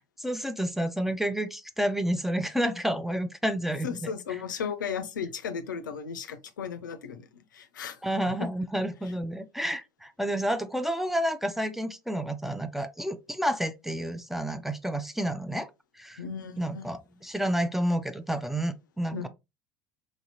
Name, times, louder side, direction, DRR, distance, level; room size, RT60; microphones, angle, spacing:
voice 1, 0.2-4.4 8.0-15.7 16.0-16.2 16.6-19.3, equal, 5° right, 0.4 m, -30 dB
voice 2, 3.8-7.3 7.5-8.0 8.4-8.5 16.2-16.9 19.1-19.3, left 6 dB, 80° left, 0.4 m, -35 dB
3.1 x 2.7 x 2.6 m
hypercardioid pair, 70°, 10 cm